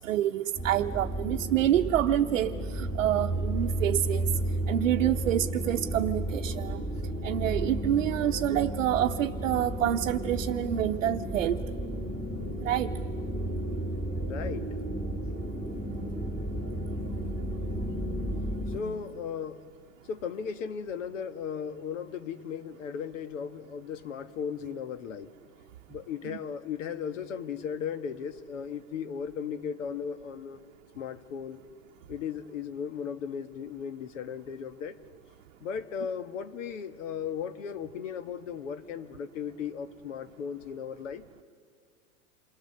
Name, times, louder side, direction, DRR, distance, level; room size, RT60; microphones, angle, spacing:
voice 1, 0.0-4.3 4.7-6.8 7.2-11.6 12.6-12.9 26.3-26.4, right 12 dB, 85° right, 4 dB, 0.8 m, -27 dB
sound 1, 0.6-18.8, right 1 dB, 20° left, 3.2 m, -33 dB
voice 2, 14.3-14.7 18.7-19.6 20.1-25.3 25.9-30.6 30.9-31.6 32.1-35.0 35.6-41.2, left 7 dB, 75° left, 10 dB, 1.4 m, -36 dB
28.0 x 22.5 x 6.8 m, 2.2 s
hypercardioid pair, 110°, 38 cm